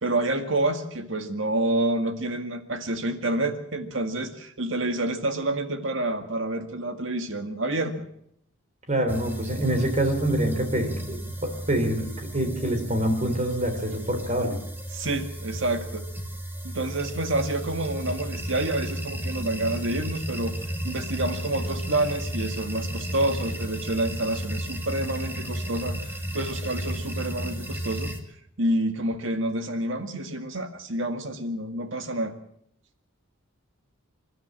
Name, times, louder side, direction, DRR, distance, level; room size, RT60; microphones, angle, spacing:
voice 1, 0.0-8.0 14.9-16.0 16.6-20.6 20.8-26.0 26.3-28.1 28.6-32.3, right 1 dB, 60° right, 8 dB, 2.0 m, -28 dB
voice 2, 8.9-12.1 12.3-14.6, right 1 dB, 35° right, 6 dB, 3.9 m, -26 dB
sound 1, 9.1-28.2, right 1 dB, 10° right, 2.0 m, -34 dB
27.5 x 12.5 x 7.6 m, 0.72 s
head